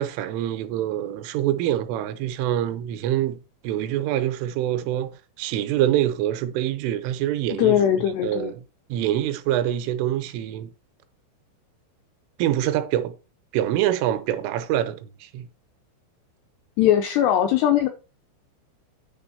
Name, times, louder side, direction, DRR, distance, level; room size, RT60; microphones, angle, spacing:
voice 1, 0.0-7.8 8.2-8.6 8.9-10.7 12.4-13.1 13.5-15.5, right 12 dB, 85° right, 3.3 m, -25 dB
voice 2, 7.6-8.5 16.8-17.9, left 11 dB, 80° left, 2.4 m, -20 dB
9.8 x 3.4 x 6.8 m
omnidirectional pair, 5.6 m